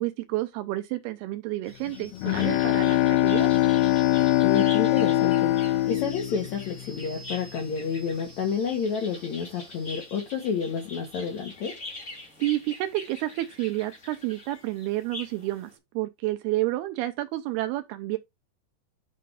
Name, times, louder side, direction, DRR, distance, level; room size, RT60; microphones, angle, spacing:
voice 1, 0.0-3.5 12.4-18.2, right 16 dB, 80° right, 2.4 m, -30 dB
sound 1, 1.6-15.7, left 2 dB, 40° left, 1.2 m, -44 dB
Bowed string instrument, 1.9-7.4, left 15 dB, 90° left, 2.2 m, -23 dB
voice 2, 4.4-5.5 5.9-11.8, left 6 dB, 65° left, 1.8 m, -29 dB
9.4 x 4.3 x 3.4 m
omnidirectional pair, 5.0 m